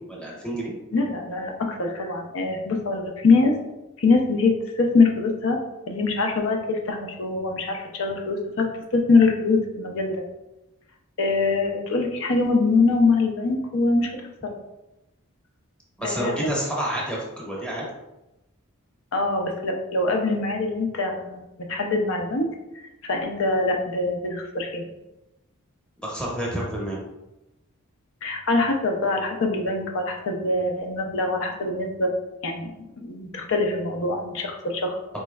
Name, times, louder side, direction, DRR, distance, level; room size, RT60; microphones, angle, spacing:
voice 1, 0.1-0.7 16.0-17.8 26.0-27.0 35.1-35.2, right 1 dB, 5° left, -5 dB, 0.9 m, -29 dB
voice 2, 0.9-3.5 4.0-5.6 5.9-10.2 11.2-14.2 14.4-14.5 16.0-16.4 19.1-22.5 23.0-24.9 28.2-32.1 32.4-35.0, left 3 dB, 65° left, 3 dB, 0.6 m, -23 dB
4.3 x 3.0 x 2.3 m, 0.96 s
head